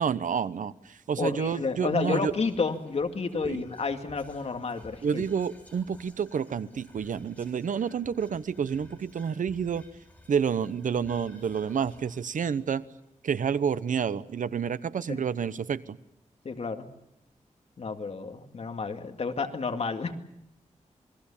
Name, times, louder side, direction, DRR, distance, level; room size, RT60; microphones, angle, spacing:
voice 1, 0.0-2.3 3.3-3.6 5.0-9.8 10.3-12.8 13.2-16.0, right 7 dB, 80° right, 15 dB, 0.9 m, -29 dB
voice 2, 1.2-5.2 15.1-15.2 16.4-16.9 17.8-20.1, left 4 dB, 50° left, 5 dB, 2.2 m, -31 dB
Whispering, 1.7-14.2, left 1 dB, 10° left, 6.1 m, -56 dB
28.0 x 21.5 x 7.2 m, 0.79 s
wide cardioid pair, 140°, 13 cm